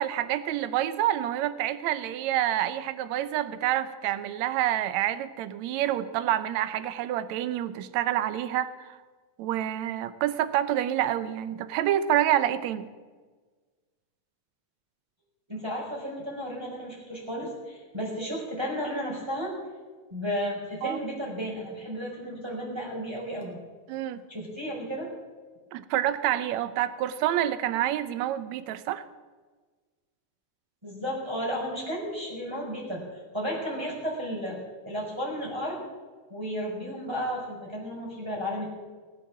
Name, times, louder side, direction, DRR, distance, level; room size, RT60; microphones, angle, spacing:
voice 1, 0.0-9.0 9.4-12.9 20.8-21.0 23.9-24.3 25.7-29.0, right 12 dB, 75° right, 13 dB, 1.9 m, -28 dB
voice 2, 15.5-19.5 20.1-23.6 24.3-25.1 30.8-33.0 33.3-34.6 34.9-35.8 36.3-38.7, equal, 10° right, -4 dB, 5.0 m, -33 dB
19.5 x 8.4 x 7.3 m, 1.4 s
omnidirectional pair, 3.6 m